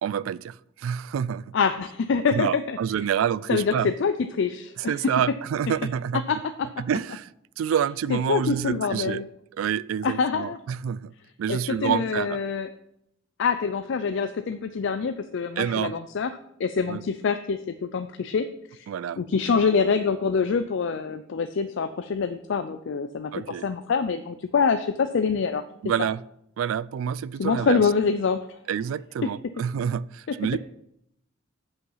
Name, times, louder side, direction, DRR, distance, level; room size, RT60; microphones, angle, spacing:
voice 1, 0.0-1.4 2.3-3.9 4.8-6.2 6.8-7.3 7.6-9.2 9.6-11.1 11.4-12.4 15.6-15.9 16.9-17.0 18.9-19.2 23.3-23.7 25.8-26.2 26.6-27.8 28.7-30.6, right 8 dB, 85° right, 0.3 m, -27 dB
voice 2, 1.5-2.8 3.5-5.2 6.3-6.8 8.1-9.3 10.0-10.6 11.5-12.7 13.4-16.3 16.6-18.9 19.2-25.6 27.4-28.6 29.2-29.3 30.3-30.4, left 5 dB, 65° left, 0.4 m, -25 dB
7.9 x 5.7 x 5.6 m
head